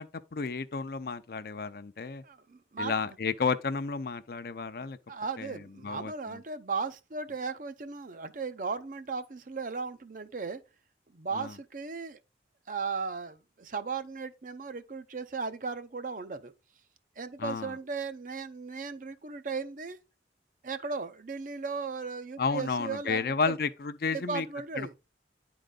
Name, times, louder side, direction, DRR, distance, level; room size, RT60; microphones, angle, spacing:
voice 1, 0.0-2.2 2.8-5.0 5.4-6.4 11.3-11.5 17.4-17.7 22.4-24.5 24.8-25.0, left 5 dB, 55° left, 0.5 m, -32 dB
voice 2, 2.2-3.2 5.1-10.6 11.1-12.2 12.7-16.5 17.2-20.0 20.6-23.5 24.1-24.9, right 4 dB, 45° right, 0.6 m, -36 dB
10.0 x 3.9 x 3.7 m
head